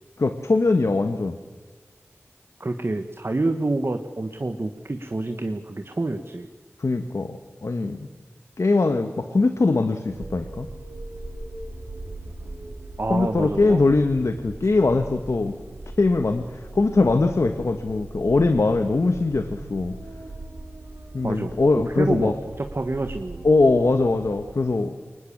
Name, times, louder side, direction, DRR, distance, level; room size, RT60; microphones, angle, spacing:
voice 1, 0.2-1.4 6.8-8.1 8.6-10.7 13.1-15.6 16.0-16.4 16.7-20.0 21.1-22.3 23.4-24.9, left 3 dB, 80° left, 8 dB, 1.3 m, -21 dB
voice 2, 2.6-6.5 13.0-13.8 21.2-23.4, right 2 dB, 55° right, 7 dB, 1.4 m, -28 dB
sound 1, 10.1-24.5, right 2 dB, 80° right, 4.7 m, -39 dB
24.0 x 20.0 x 7.3 m, 1.4 s
wide cardioid pair, 50°, 5 cm